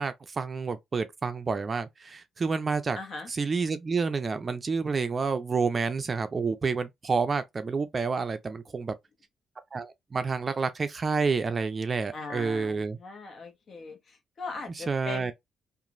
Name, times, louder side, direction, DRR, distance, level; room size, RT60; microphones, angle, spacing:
voice 1, 0.0-3.0 3.3-8.9 9.7-13.0 14.7-15.3, right 4 dB, 35° right, 0.4 m, -29 dB
voice 2, 3.0-3.3 12.1-15.3, left 4 dB, 50° left, 1.1 m, -40 dB
2.9 x 2.5 x 2.5 m
cardioid pair, 90°, 0 cm